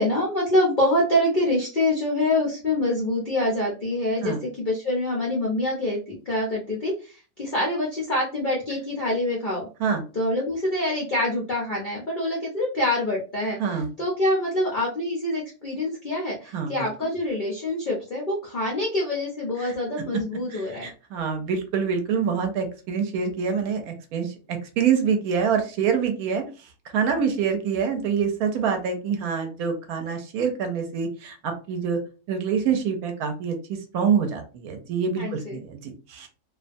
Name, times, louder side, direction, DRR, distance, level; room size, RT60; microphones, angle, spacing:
voice 1, 0.0-9.7 10.1-20.9 35.2-35.6, left 1 dB, 80° left, -4 dB, 0.4 m, -25 dB
voice 2, 20.5-26.4 26.9-32.0 32.3-33.6 33.9-36.3, right 6 dB, 70° right, 5 dB, 1.0 m, -26 dB
2.7 x 2.2 x 2.5 m, 0.34 s
omnidirectional pair, 1.9 m